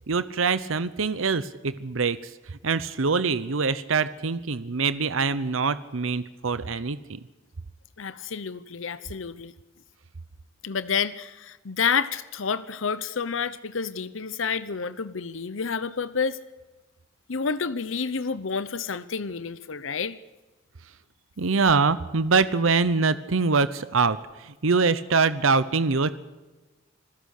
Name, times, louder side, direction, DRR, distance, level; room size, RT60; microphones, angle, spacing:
voice 1, 0.1-7.2 21.4-26.1, right 4 dB, 85° right, 15 dB, 0.8 m, -24 dB
voice 2, 8.0-9.5 10.6-16.4 17.3-20.2, left 6 dB, 75° left, 15 dB, 0.8 m, -29 dB
26.5 x 16.0 x 6.6 m, 1.2 s
head